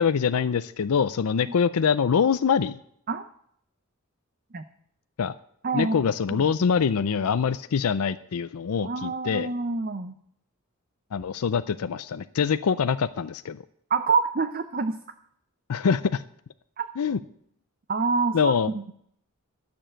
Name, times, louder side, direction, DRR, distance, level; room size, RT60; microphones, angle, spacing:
voice 1, 0.0-2.8 5.2-5.3 5.7-9.5 11.1-13.6 15.7-16.2 17.0-17.2 18.3-18.7, left 6 dB, 90° left, 12 dB, 0.5 m, -24 dB
voice 2, 5.6-6.0 6.3-6.5 8.8-10.1 13.9-15.0 16.8-16.9 17.9-18.9, right 4 dB, 40° right, 9 dB, 0.6 m, -26 dB
12.5 x 7.0 x 7.5 m, 0.68 s
head